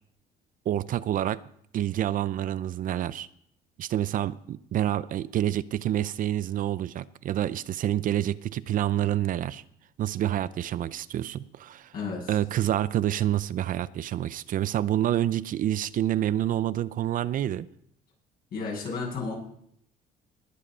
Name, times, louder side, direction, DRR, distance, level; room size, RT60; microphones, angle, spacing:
voice 1, 0.7-1.4 1.7-3.3 3.8-9.6 10.0-11.9 12.3-17.7, right 12 dB, 55° right, 17 dB, 0.5 m, -28 dB
voice 2, 11.9-12.4 18.5-19.3, left 4 dB, 60° left, -1 dB, 7.7 m, -32 dB
20.0 x 7.7 x 5.5 m, 0.69 s
cardioid pair, 110°, 17 cm